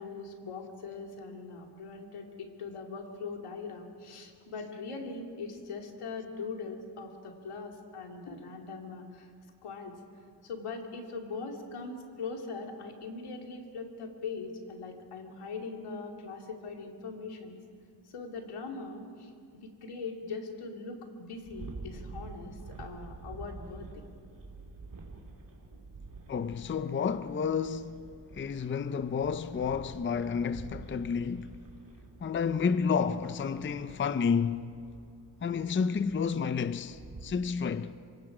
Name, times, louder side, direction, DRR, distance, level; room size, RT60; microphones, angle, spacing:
voice 1, 0.0-9.3 9.6-10.0 10.4-17.6 18.0-19.3 19.6-24.0, left 4 dB, 90° left, 2.7 m, -41 dB
sound 1, 21.3-37.3, right 3 dB, 40° right, 2.9 m, -48 dB
voice 2, 26.3-28.1 28.3-31.6 32.2-34.7 35.4-37.9, left 6 dB, 25° left, 0.5 m, -30 dB
27.0 x 24.5 x 4.9 m
wide cardioid pair, 115°, 50 cm